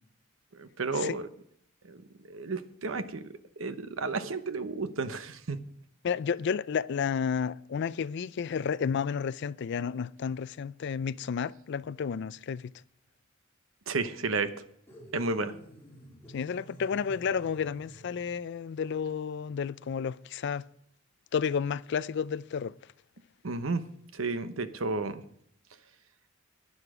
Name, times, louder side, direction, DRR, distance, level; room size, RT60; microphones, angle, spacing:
voice 1, 0.5-1.3 1.8-2.0 2.3-3.2 3.6-5.6 13.9-14.5 15.1-15.5 23.4-23.8 24.1-25.2, right 3 dB, 85° right, 0.9 m, -32 dB
voice 2, 6.0-12.7 16.3-20.6 21.3-22.7, left 6 dB, 60° left, 0.4 m, -31 dB
sound 1, 14.9-18.4, equal, 10° left, 3.4 m, -51 dB
11.5 x 9.9 x 4.9 m
head